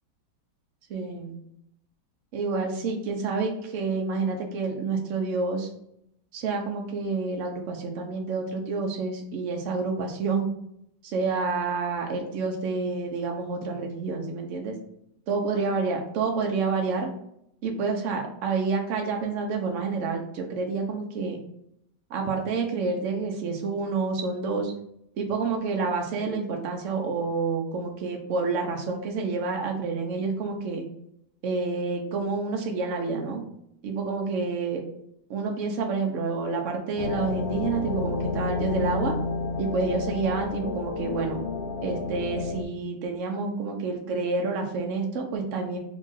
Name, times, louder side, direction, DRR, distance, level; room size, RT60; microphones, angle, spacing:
voice 1, 0.9-1.4 2.3-5.7 6.3-10.5 11.0-14.7 15.3-17.1 17.6-21.4 22.1-24.7 25.2-30.9 31.4-33.4 33.8-34.8 35.3-39.1 39.6-41.4 41.8-45.8, right 4 dB, 55° right, 2 dB, 0.9 m, -28 dB
sound 1, 37.0-42.6, left 4 dB, 70° left, 0.9 m, -30 dB
3.6 x 2.4 x 3.9 m, 0.73 s
omnidirectional pair, 1.9 m